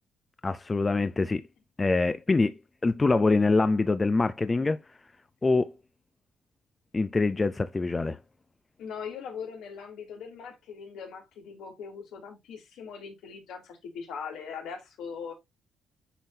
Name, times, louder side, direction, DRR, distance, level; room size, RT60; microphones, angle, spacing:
voice 1, 0.4-1.4 1.8-4.8 5.4-5.7 6.9-8.2, left 3 dB, 25° left, 0.5 m, -25 dB
voice 2, 8.8-15.3, left 6 dB, 85° left, 3.3 m, -40 dB
9.9 x 3.7 x 2.7 m
cardioid pair, 105°, 0 cm